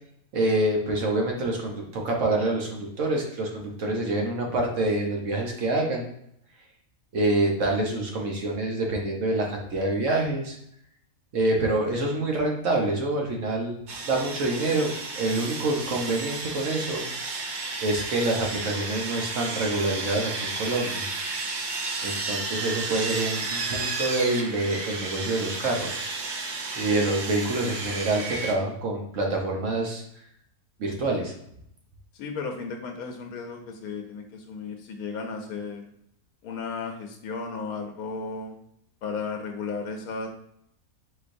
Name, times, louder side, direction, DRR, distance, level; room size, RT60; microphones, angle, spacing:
voice 1, 0.3-6.1 7.1-10.6 11.3-13.8 14.0-17.1 17.8-21.1 22.0-26.0 26.7-30.0 30.8-31.3, right 2 dB, 60° right, 0 dB, 1.2 m, -26 dB
Sawing, 13.9-28.5, right 3 dB, 80° right, 0.4 m, -32 dB
voice 2, 32.1-35.8 36.4-38.6 39.0-40.3, left 4 dB, 85° left, 3 dB, 1.1 m, -34 dB
4.5 x 4.1 x 2.6 m, 0.72 s
omnidirectional pair, 1.5 m